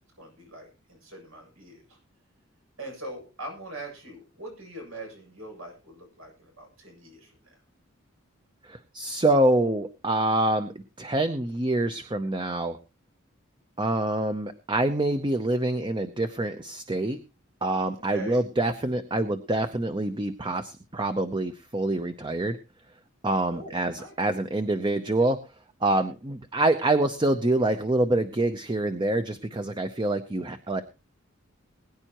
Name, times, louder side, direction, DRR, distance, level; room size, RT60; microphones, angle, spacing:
voice 1, 0.2-2.0 2.8-7.6 18.0-18.4 23.5-24.1, right 1 dB, 85° right, 2 dB, 7.9 m, -42 dB
voice 2, 8.6-12.8 13.8-17.2 17.6-22.6 23.2-25.4 25.8-30.8, right 2 dB, 25° right, 8 dB, 0.7 m, -26 dB
21.5 x 10.0 x 3.0 m, 0.31 s
head